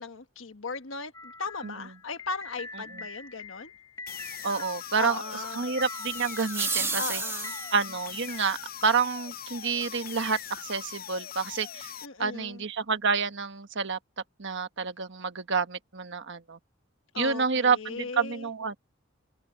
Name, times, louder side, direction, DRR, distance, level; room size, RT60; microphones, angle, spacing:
voice 1, 0.0-3.7 5.0-5.7 7.0-7.6 12.0-12.6 17.1-18.5, left 4 dB, 65° left, 1.5 m, -37 dB
sound 1, 1.1-9.1, left 3 dB, 20° left, 1.6 m, -44 dB
sound 2, 4.1-12.1, left 10 dB, 45° left, 0.9 m, -41 dB
voice 2, 4.4-5.2 5.5-7.2 7.7-11.9 12.2-14.0 14.4-16.6 17.2-18.8, right 5 dB, 60° right, 1.4 m, -29 dB
sound 3, 5.8-8.0, right 4 dB, 15° right, 2.3 m, -33 dB
head